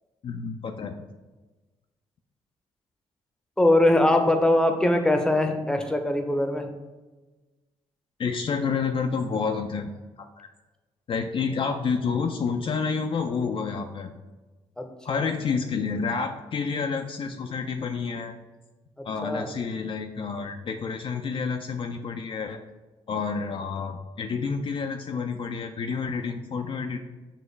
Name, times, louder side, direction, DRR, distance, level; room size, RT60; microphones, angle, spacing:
voice 1, 0.2-0.9 8.2-9.9 10.2-10.5 11.1-14.1 15.0-18.4 19.0-22.6 23.1-27.0, left 5 dB, 45° left, 5 dB, 0.3 m, -29 dB
voice 2, 3.6-6.7 14.8-15.3 19.2-19.5, left 1 dB, 5° left, 5 dB, 0.6 m, -22 dB
6.3 x 2.2 x 3.2 m, 1.2 s
supercardioid pair, 55°, 13 cm